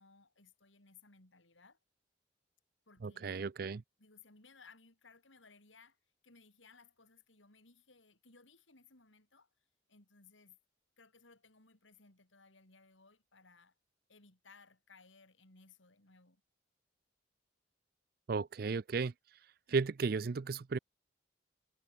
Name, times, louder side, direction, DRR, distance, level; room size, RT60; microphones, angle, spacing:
voice 1, 0.0-1.8 2.9-3.4 4.0-6.0 6.2-9.5 9.9-10.6 11.0-13.7 14.1-16.4, left 4 dB, 85° left, 4.6 m, -62 dB
voice 2, 3.0-3.8 18.3-19.1 19.7-20.8, right 4 dB, 50° right, 0.4 m, -34 dB
head